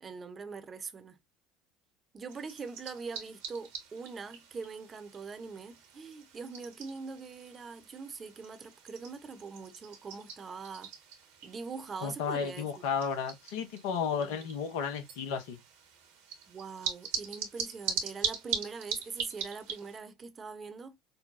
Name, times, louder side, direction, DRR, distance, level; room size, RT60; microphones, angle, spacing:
voice 1, 0.0-1.2 2.1-10.9 11.4-12.8 14.2-14.4 16.5-20.9, right 4 dB, 35° right, 0.8 m, -43 dB
sound 1, 2.3-20.0, right 7 dB, 75° right, 1.3 m, -41 dB
voice 2, 12.0-15.6, left 6 dB, 70° left, 0.9 m, -33 dB
5.4 x 2.2 x 2.5 m
hypercardioid pair, 70°, 0 cm